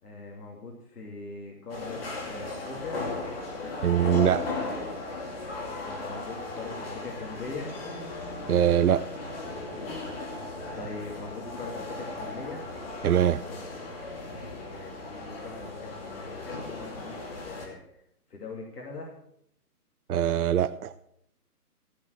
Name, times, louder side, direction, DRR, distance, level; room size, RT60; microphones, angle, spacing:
voice 1, 0.0-3.0 5.8-7.8 10.7-12.7 14.7-17.2 17.4-18.0 18.3-19.2, left 3 dB, 75° left, -1 dB, 2.9 m, -41 dB
sound 1, 1.7-17.7, left 3 dB, 35° left, 2.6 m, -37 dB
voice 2, 3.8-4.5 8.5-9.1 13.0-13.4 20.1-20.9, right 10 dB, 70° right, 12 dB, 0.6 m, -23 dB
15.0 x 5.3 x 7.9 m, 0.73 s
hypercardioid pair, 170°, 47 cm